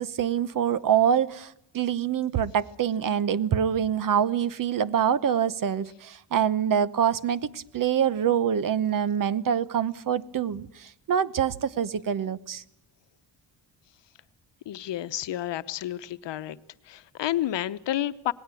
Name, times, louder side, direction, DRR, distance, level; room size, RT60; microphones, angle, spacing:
voice 1, 0.0-12.6, right 8 dB, 45° right, 0.9 m, -25 dB
voice 2, 14.7-16.6 16.9-18.3, left 13 dB, 65° left, 1.0 m, -30 dB
27.0 x 20.0 x 8.3 m
cardioid pair, 165°, 45 cm